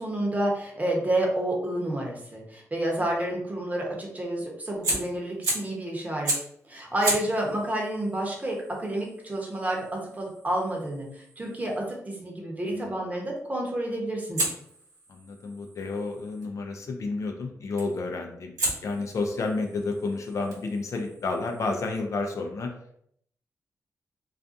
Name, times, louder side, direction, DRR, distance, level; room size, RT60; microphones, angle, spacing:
voice 1, 0.0-6.3 6.7-9.8 10.2-14.4, right 1 dB, 25° right, -1 dB, 0.8 m, -29 dB
Fire, 4.8-5.8 6.2-6.6 7.0-11.9 14.3-16.5 17.8-18.1 18.6-22.0, right 2 dB, 80° right, 0.8 m, -35 dB
voice 2, 15.1-18.5 18.8-22.7, left 3 dB, 60° left, 3 dB, 0.4 m, -31 dB
2.4 x 2.3 x 2.6 m, 0.69 s
cardioid pair, 85°, 6 cm